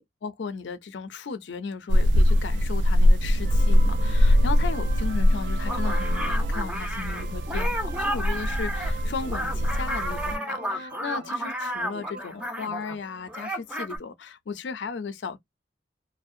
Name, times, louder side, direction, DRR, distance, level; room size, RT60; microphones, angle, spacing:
voice 1, 0.0-15.4, left 5 dB, 80° left, 0.5 m, -36 dB
sound 1, 1.9-13.7, right 2 dB, 55° right, 0.7 m, -43 dB
sound 2, 1.9-10.4, equal, 80° right, 0.3 m, -22 dB
sound 3, 5.7-13.0 13.3-14.0, equal, 5° right, 0.5 m, -32 dB
2.6 x 2.0 x 2.4 m
head